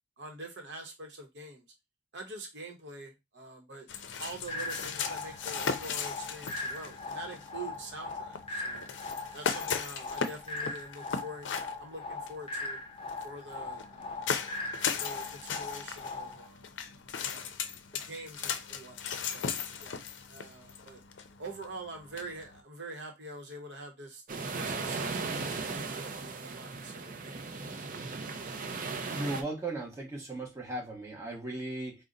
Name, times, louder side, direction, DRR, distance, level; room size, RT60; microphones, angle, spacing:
voice 1, 0.2-1.6 2.1-3.9 4.2-8.9 9.3-12.8 13.2-14.3 15.0-16.7 17.2-17.5 17.9-19.5 19.8-20.0 20.3-21.0 21.4-24.2 24.5-27.8 28.8-28.9, right 2 dB, 70° right, 0.9 m, -45 dB
sound 1, 3.9-22.6, left 6 dB, 80° left, 0.5 m, -38 dB
sound 2, 4.5-16.5, left 3 dB, 30° left, 0.5 m, -40 dB
sound 3, 24.3-29.4, right 4 dB, 45° right, 0.5 m, -37 dB
voice 2, 29.1-32.0, right 2 dB, 15° right, 1.0 m, -36 dB
3.8 x 2.1 x 3.8 m
head